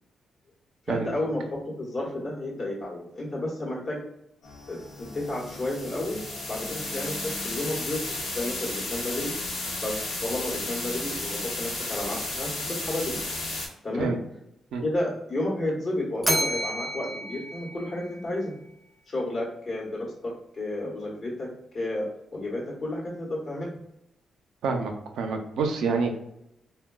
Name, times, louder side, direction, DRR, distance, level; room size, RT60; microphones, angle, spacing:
voice 1, 0.9-4.0 4.7-6.2 6.5-9.3 9.8-13.2 13.8-14.1 14.8-18.6 19.1-21.5 21.7-23.7, left 1 dB, 50° left, -3 dB, 1.0 m, -32 dB
sound 1, 4.4-13.7, left 2 dB, 90° left, 0.9 m, -33 dB
Bell, 16.2-18.5, equal, 5° right, 0.6 m, -30 dB
voice 2, 24.6-26.1, right 4 dB, 85° right, 4 dB, 0.5 m, -27 dB
3.7 x 2.2 x 2.2 m, 0.81 s
cardioid pair, 65°, 0 cm